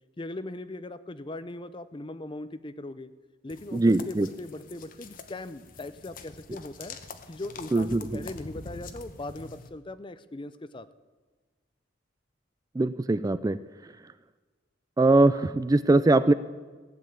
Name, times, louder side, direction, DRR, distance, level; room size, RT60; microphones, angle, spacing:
voice 1, 0.2-3.1 3.4-7.0 7.3-10.9, left 2 dB, 25° left, 13 dB, 0.6 m, -39 dB
sound 1, 3.5-9.7, left 3 dB, 45° left, 1.0 m, -45 dB
voice 2, 3.7-4.3 7.7-8.2 12.8-13.6 15.0-16.3, right 2 dB, 20° right, 14 dB, 0.3 m, -21 dB
15.5 x 7.8 x 8.8 m, 1.4 s
head